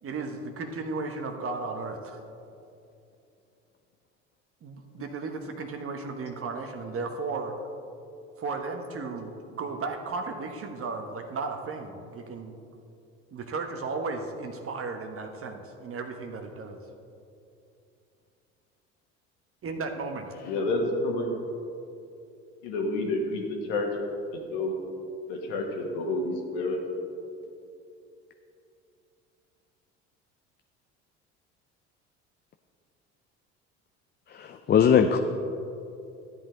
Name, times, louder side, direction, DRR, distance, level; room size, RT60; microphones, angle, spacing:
voice 1, 0.0-2.2 4.6-7.6 8.4-12.5 13.3-16.8 19.6-20.3, right 4 dB, 40° right, 5 dB, 1.2 m, -35 dB
voice 2, 20.4-21.3 22.6-23.9 24.5-24.7 25.3-26.8, left 2 dB, 70° left, 1 dB, 1.8 m, -29 dB
voice 3, 34.3-35.2, left 7 dB, 30° left, 6 dB, 0.5 m, -21 dB
12.5 x 8.2 x 3.9 m, 2.6 s
hypercardioid pair, 65°, 36 cm